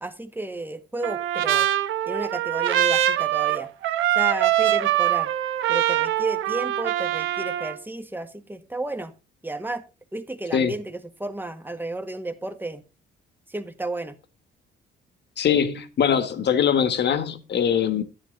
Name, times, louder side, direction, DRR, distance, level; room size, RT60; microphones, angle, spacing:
voice 1, 0.0-1.7 2.1-3.7 4.1-5.3 5.7-9.1 9.4-9.8 10.1-12.8 13.5-14.2, right 2 dB, 10° right, 1.8 m, -32 dB
Trumpet, 1.0-7.8, right 12 dB, 85° right, 1.1 m, -23 dB
voice 2, 15.4-18.0, left 8 dB, 60° left, 1.8 m, -22 dB
11.5 x 10.5 x 4.0 m
cardioid pair, 90°, 20 cm